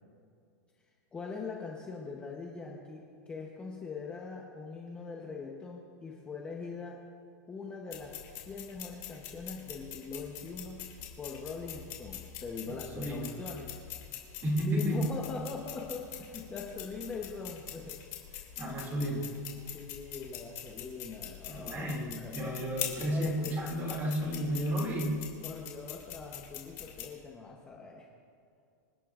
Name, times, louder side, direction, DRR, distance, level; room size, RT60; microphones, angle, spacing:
voice 1, 0.9-7.0 7.5-10.8 11.2-13.8 14.6-18.0 19.4-21.9 22.2-22.3 23.1-23.6 25.4-28.1, left 4 dB, 10° left, -1 dB, 0.9 m, -42 dB
sound 1, 7.9-27.0, left 11 dB, 35° left, 2.8 m, -44 dB
voice 2, 12.7-13.3 14.4-15.0 18.5-19.3 21.5-25.2, equal, 20° right, -1 dB, 2.5 m, -32 dB
27.0 x 11.0 x 2.5 m, 2.4 s
supercardioid pair, 165°, 10 cm